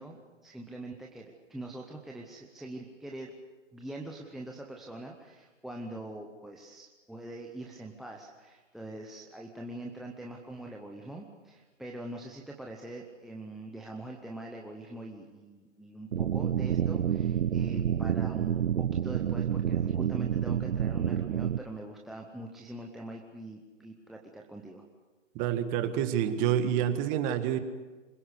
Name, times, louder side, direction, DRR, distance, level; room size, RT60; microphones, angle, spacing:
voice 1, 0.0-3.3 3.7-24.8, right 1 dB, ahead, -1 dB, 0.7 m, -43 dB
sound 1, 16.1-21.6, right 9 dB, 70° right, 0.8 m, -29 dB
voice 2, 25.3-27.6, right 10 dB, 20° right, 8 dB, 1.6 m, -28 dB
26.0 x 17.0 x 8.1 m, 1.3 s
hypercardioid pair, 140°, 38 cm